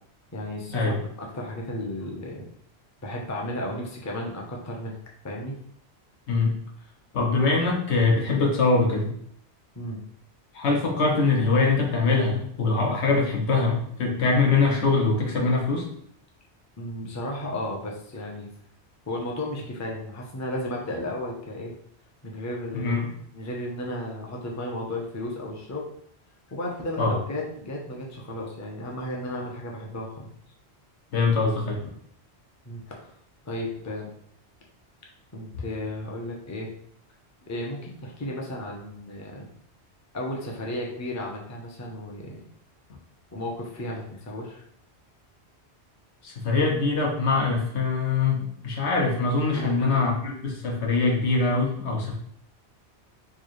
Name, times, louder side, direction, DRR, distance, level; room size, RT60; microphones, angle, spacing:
voice 1, 0.3-2.4 3.0-5.0 5.2-5.5 9.7-10.0 16.8-18.5 19.1-21.7 22.2-23.0 23.3-25.9 26.5-30.3 32.7-33.1 33.5-34.1 35.3-36.7 37.5-39.5 40.1-42.4 43.3-44.7 49.5-50.1, left 1 dB, 20° left, -1 dB, 0.5 m, -34 dB
voice 2, 7.1-9.1 10.5-15.8 22.7-23.1 27.0-27.2 31.1-31.8 46.2-52.2, left 3 dB, 80° left, 0 dB, 1.2 m, -23 dB
4.7 x 2.3 x 3.1 m, 0.65 s
omnidirectional pair, 1.1 m